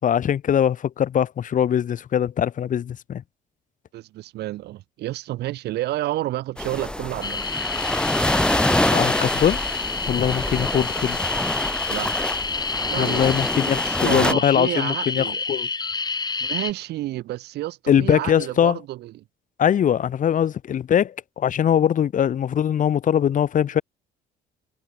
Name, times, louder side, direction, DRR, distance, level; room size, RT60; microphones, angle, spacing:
voice 1, 0.0-3.2 8.9-9.8 10.1-11.2 13.0-15.7 17.9-18.8 19.6-23.8, left 9 dB, 50° left, 3.5 m, -22 dB
voice 2, 3.9-7.4 11.9-12.2 12.8-13.4 13.7-15.4 16.4-19.1, right 15 dB, 75° right, 6.1 m, -30 dB
sound 1, 6.6-14.3, left 1 dB, 5° left, 4.6 m, -25 dB
sound 2, 7.2-16.7, left 4 dB, 25° left, 4.6 m, -29 dB
cardioid pair, 110°, 17 cm